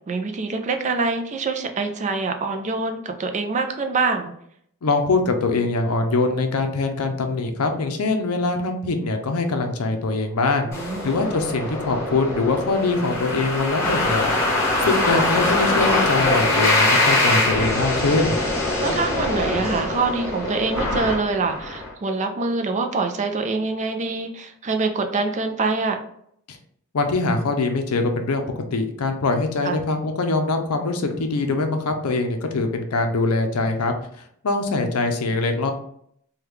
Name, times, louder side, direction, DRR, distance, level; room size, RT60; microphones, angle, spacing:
voice 1, 0.1-4.3 10.7-11.1 18.8-26.0 29.6-29.8, right 3 dB, 35° right, 5 dB, 0.4 m, -25 dB
voice 2, 4.8-18.4 26.9-28.4 28.7-33.9 34.4-35.7, left 3 dB, 75° left, 5 dB, 0.6 m, -23 dB
sound 1, 10.7-21.9, left 2 dB, 15° left, 1.3 m, -23 dB
3.5 x 2.3 x 3.1 m, 0.68 s
head